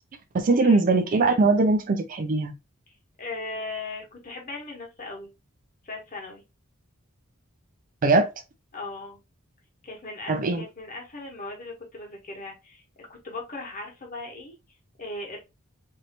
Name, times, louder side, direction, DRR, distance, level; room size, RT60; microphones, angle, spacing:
voice 1, 0.3-2.5 8.0-8.3 10.3-10.6, right 3 dB, 40° right, 0.4 m, -21 dB
voice 2, 3.2-5.3 5.8-6.4 8.7-9.2 9.8-14.5 15.0-15.4, left 2 dB, 40° left, 1.1 m, -38 dB
3.1 x 2.7 x 2.8 m
head